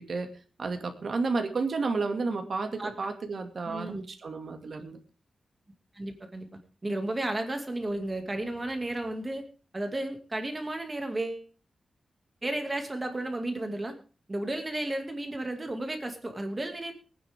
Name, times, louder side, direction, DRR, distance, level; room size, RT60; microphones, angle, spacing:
voice 1, 0.6-5.0, right 4 dB, 55° right, 5 dB, 2.4 m, -31 dB
voice 2, 3.6-4.0 5.9-6.5 6.8-9.4 9.7-11.4 12.4-14.0 14.3-16.9, right 1 dB, 20° right, 5 dB, 2.4 m, -33 dB
22.0 x 9.9 x 3.7 m, 0.35 s
wide cardioid pair, 130°, 0 cm